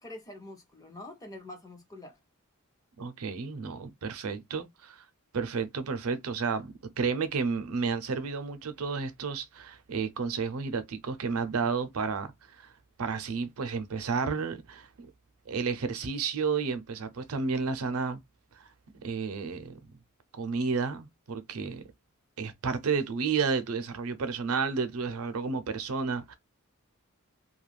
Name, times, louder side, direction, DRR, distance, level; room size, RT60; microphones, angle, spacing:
voice 1, 0.0-2.1, left 1 dB, 15° left, 0.7 m, -45 dB
voice 2, 3.0-5.1 5.3-12.7 13.0-15.1 15.5-18.2 18.6-18.7 18.9-19.8 20.3-21.8 22.4-26.4, right 5 dB, 70° right, 0.5 m, -31 dB
2.3 x 2.2 x 3.1 m
head